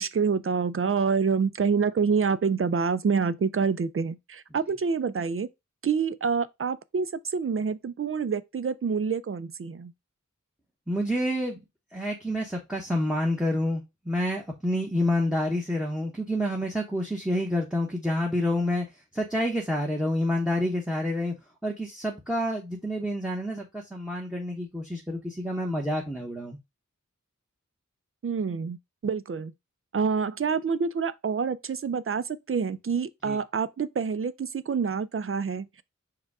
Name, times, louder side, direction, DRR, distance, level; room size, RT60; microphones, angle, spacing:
voice 1, 0.0-5.5 5.8-9.9 28.2-28.8 29.0-29.5 29.9-35.8, right 5 dB, 45° right, 0.4 m, -27 dB
voice 2, 10.9-11.6 11.9-18.8 19.1-21.3 21.6-26.6 33.3-33.4, left 1 dB, ahead, 1.0 m, -28 dB
4.8 x 2.3 x 4.7 m
wide cardioid pair, 55°, 31 cm